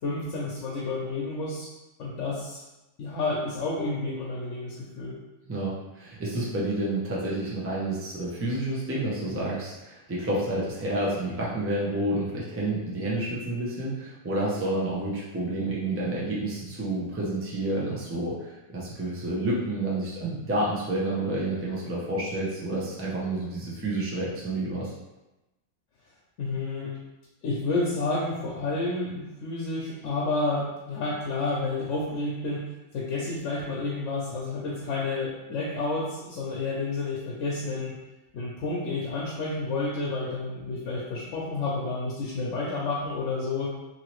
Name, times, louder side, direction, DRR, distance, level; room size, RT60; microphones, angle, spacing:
voice 1, 0.0-1.7 2.0-2.6 3.0-5.2 26.4-27.0 27.4-32.6 32.9-38.0 38.3-43.7, left 3 dB, 85° left, -4 dB, 1.0 m, -30 dB
voice 2, 5.5-24.9, right 1 dB, 15° right, -6 dB, 0.5 m, -29 dB
2.7 x 2.7 x 3.0 m, 1.0 s
omnidirectional pair, 1.2 m